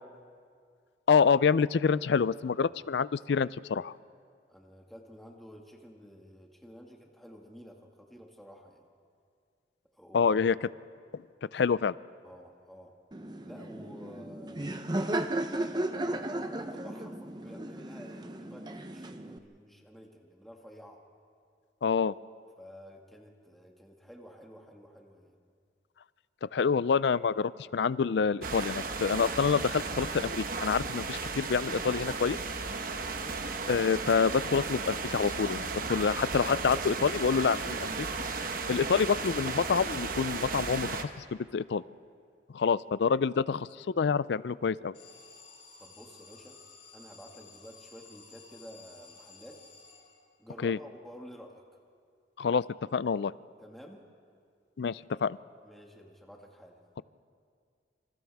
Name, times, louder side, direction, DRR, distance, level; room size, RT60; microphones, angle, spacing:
voice 1, 1.1-3.9 10.1-10.6 11.1-11.2 11.5-11.9 21.8-22.1 26.5-32.4 33.7-38.1 38.7-41.8 42.5-44.9 50.6-50.8 52.4-52.6 52.9-53.3 54.8-55.4, left 6 dB, 70° left, 18 dB, 0.4 m, -27 dB
voice 2, 4.5-8.8 9.9-10.4 12.2-12.9 13.4-15.7 16.0-21.0 22.6-25.4 45.8-46.6 46.9-49.6 50.4-51.6 53.6-54.0 55.6-57.0, equal, ahead, 0 dB, 1.8 m, -51 dB
Laughter, 13.1-19.4, right 1 dB, 25° right, 0.7 m, -35 dB
sound 1, 28.4-41.0, right 4 dB, 50° right, 1.1 m, -35 dB
Alarm, 44.9-50.5, left 4 dB, 90° left, 6.2 m, -54 dB
27.5 x 27.0 x 3.5 m, 2.2 s
head